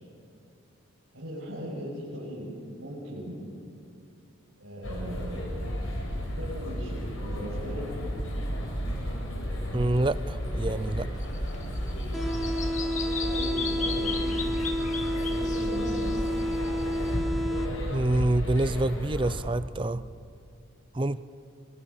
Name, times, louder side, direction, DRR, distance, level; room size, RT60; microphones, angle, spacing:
voice 1, 1.1-2.5 2.8-3.4 4.6-5.4 6.4-7.9 13.0-14.3 15.0-16.2, equal, 90° right, -8 dB, 6.7 m, -38 dB
sound 1, 4.8-19.4, equal, 80° left, 7.1 m, -33 dB
voice 2, 9.7-11.1 17.9-20.0 20.9-21.2, right 1 dB, 25° right, 15 dB, 0.5 m, -26 dB
Bird vocalization bird call bird song, 11.2-17.1, left 5 dB, 35° left, 2.0 m, -37 dB
sound 2, 12.1-18.1, equal, ahead, 1.2 m, -30 dB
25.5 x 23.0 x 7.2 m, 2.5 s
head